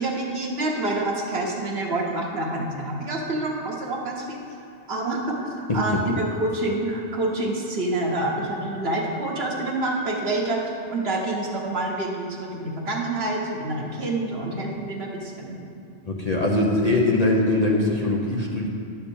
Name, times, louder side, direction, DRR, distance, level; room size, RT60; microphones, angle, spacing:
voice 1, 0.0-4.4 4.9-15.7, right 2 dB, 55° right, -1 dB, 1.3 m, -27 dB
voice 2, 16.1-18.7, left 2 dB, 35° left, -2 dB, 0.8 m, -22 dB
10.0 x 4.5 x 6.9 m, 2.5 s
omnidirectional pair, 1.3 m